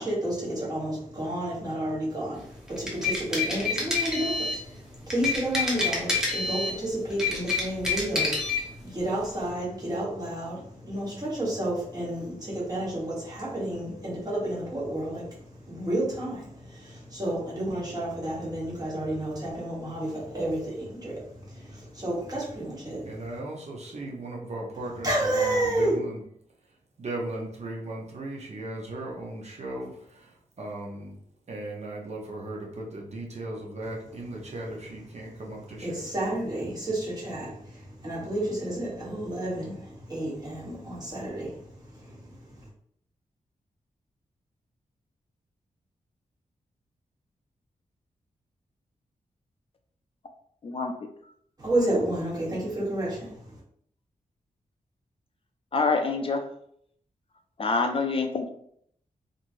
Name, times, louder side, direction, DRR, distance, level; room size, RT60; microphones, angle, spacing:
voice 1, 0.0-23.4 25.0-26.0 34.4-34.5 35.3-35.4 35.8-42.7 51.6-53.6, right 1 dB, 30° right, -6 dB, 1.3 m, -31 dB
sound 1, 2.7-4.6 5.1-6.8 7.1-8.6, left 3 dB, 5° right, 1.0 m, -27 dB
voice 2, 23.0-26.2 27.0-31.2 31.5-36.1, right 2 dB, 55° right, -2 dB, 0.7 m, -37 dB
voice 3, 50.6-51.1 55.7-56.5 57.6-58.5, left 4 dB, 40° left, 5 dB, 0.4 m, -26 dB
3.0 x 2.5 x 2.5 m, 0.67 s
cardioid pair, 85°, 14 cm